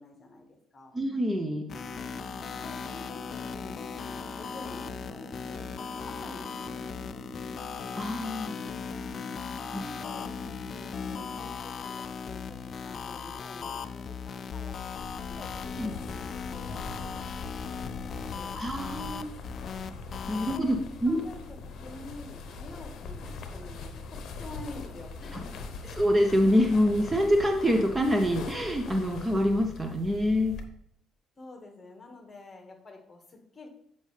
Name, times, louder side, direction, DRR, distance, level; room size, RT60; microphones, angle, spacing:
voice 1, 0.0-0.9 2.6-6.7 7.0-7.7 9.7-10.3 10.7-17.1 17.4-17.6 18.0-18.6 20.5-20.8 21.0-25.7 31.4-33.7, left 2 dB, 25° left, 2 dB, 1.6 m, -48 dB
voice 2, 0.9-1.7 8.0-8.8 9.7-9.8 15.8-15.9 18.6-19.3 20.3-20.8 21.0-21.2 25.8-30.6, equal, 15° right, 5 dB, 0.6 m, -26 dB
sound 1, 1.5-11.5, right 1 dB, 45° right, 1.6 m, -48 dB
sound 2, 1.7-20.6, left 6 dB, 45° left, 0.3 m, -38 dB
sound 3, 14.9-30.6, left 4 dB, 60° left, 0.8 m, -42 dB
8.0 x 5.3 x 3.3 m, 0.71 s
cardioid pair, 110°, 0 cm